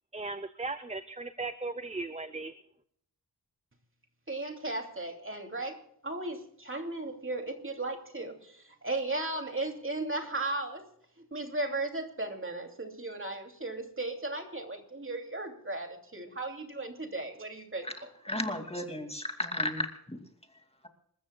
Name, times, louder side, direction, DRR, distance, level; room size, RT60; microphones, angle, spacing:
voice 1, 0.1-2.5, right 3 dB, 15° right, 11 dB, 0.7 m, -37 dB
voice 2, 4.3-10.8 11.2-18.4, right 2 dB, 35° right, 4 dB, 2.8 m, -36 dB
voice 3, 18.3-20.2, left 1 dB, 15° left, 4 dB, 2.5 m, -33 dB
28.5 x 14.0 x 2.3 m, 0.70 s
wide cardioid pair, 75°, 38 cm